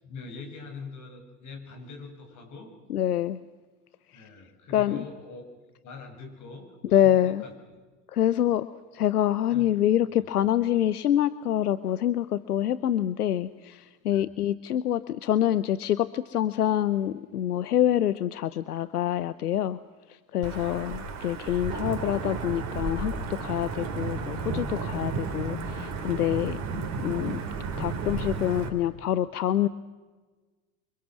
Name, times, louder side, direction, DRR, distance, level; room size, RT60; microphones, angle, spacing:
voice 1, 0.0-2.7 4.1-7.1 7.4-7.8 9.5-9.7 14.1-14.3 20.5-20.8 23.8-24.1, left 4 dB, 40° left, 4 dB, 7.5 m, -44 dB
voice 2, 2.9-3.4 4.1-4.2 4.7-5.0 6.8-7.4 8.1-19.8 20.1-26.6 27.0-27.4 27.8-29.7, left 11 dB, 85° left, 16 dB, 0.8 m, -26 dB
Wind / Thunder / Rain, 20.4-28.7, right 4 dB, 35° right, 4.3 m, -33 dB
29.5 x 25.0 x 6.2 m, 1.3 s
hypercardioid pair, 85°, 45 cm